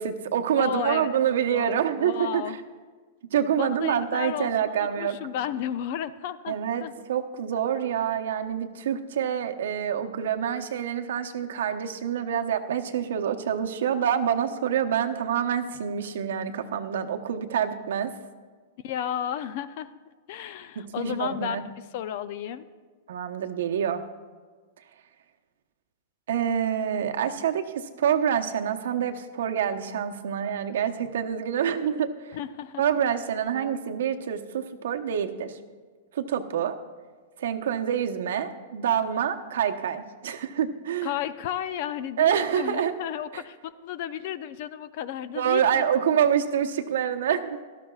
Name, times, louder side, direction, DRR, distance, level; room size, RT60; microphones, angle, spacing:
voice 1, 0.0-2.4 3.3-5.2 6.5-6.8 7.1-18.1 20.8-21.6 23.1-24.0 26.3-32.1 32.8-35.6 36.1-36.7 37.4-41.1 42.2-42.9 43.3-43.4 45.3-47.6, right 8 dB, 70° right, 6 dB, 0.9 m, -26 dB
voice 2, 0.6-1.2 1.5-2.6 3.6-6.9 7.5-7.6 18.8-19.9 20.3-22.7 32.3-32.8 41.0-45.9, left 10 dB, 40° left, 14 dB, 0.4 m, -33 dB
17.5 x 13.0 x 2.4 m, 1.5 s
supercardioid pair, 180°, 0 cm